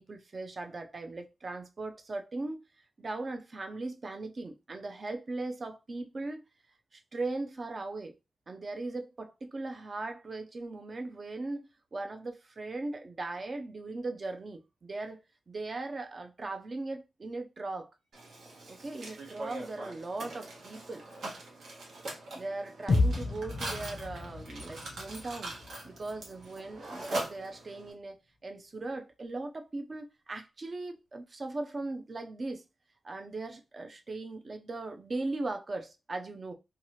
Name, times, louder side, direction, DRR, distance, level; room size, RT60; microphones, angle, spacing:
voice 1, 0.0-2.6 3.0-6.4 6.9-8.1 8.5-15.2 15.5-17.9 18.7-21.0 22.3-25.6 25.8-28.2 28.4-32.6 33.0-36.5, right 2 dB, 30° right, 0.4 m, -38 dB
Mechanisms, 18.1-27.9, right 2 dB, 80° right, 1.0 m, -42 dB
sound 1, 22.9-26.9, left 3 dB, 35° left, 0.5 m, -32 dB
2.8 x 2.3 x 3.0 m
wide cardioid pair, 180°, 0 cm